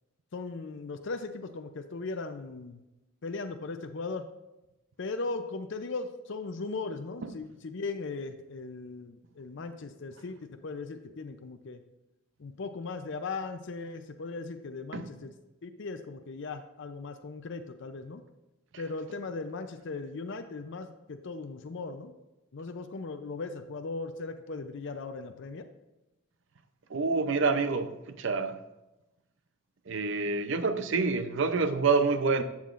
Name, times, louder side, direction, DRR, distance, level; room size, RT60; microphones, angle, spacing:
voice 1, 0.3-2.8 3.2-4.3 5.0-11.8 12.4-15.3 15.6-18.3 18.8-22.1 22.5-25.7, left 3 dB, 60° left, 7 dB, 0.5 m, -38 dB
voice 2, 26.9-28.6 29.9-32.4, right 4 dB, 60° right, 10 dB, 0.6 m, -27 dB
11.0 x 7.3 x 2.5 m, 0.98 s
head